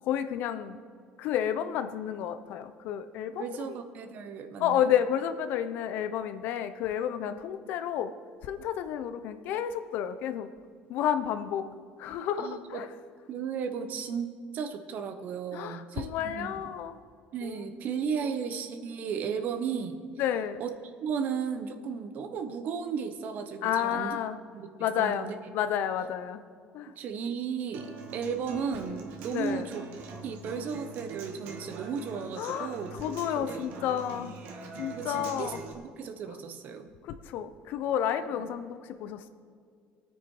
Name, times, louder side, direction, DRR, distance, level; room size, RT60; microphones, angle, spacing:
voice 1, 0.0-0.8 1.2-3.8 4.6-8.1 8.4-10.5 10.9-11.6 12.0-12.9 15.5-17.0 17.4-17.6 18.2-18.3 20.2-20.6 23.6-24.4 24.8-25.3 25.5-26.4 26.7-26.9 29.3-29.7 32.4-34.3 34.8-35.6 37.0-39.3, left 9 dB, 70° left, 11 dB, 0.9 m, -31 dB
voice 2, 3.4-4.9 12.4-12.8 13.3-16.5 17.3-20.0 20.6-20.7 21.0-24.2 24.5-24.7 25.0-25.3 26.9-29.9 30.2-34.0 34.9-36.9, right 6 dB, 55° right, 8 dB, 1.1 m, -35 dB
Human voice / Acoustic guitar, 27.7-35.7, right 3 dB, 75° right, 1.8 m, -43 dB
20.5 x 9.1 x 4.9 m, 2.2 s
cardioid pair, 115°, 3 cm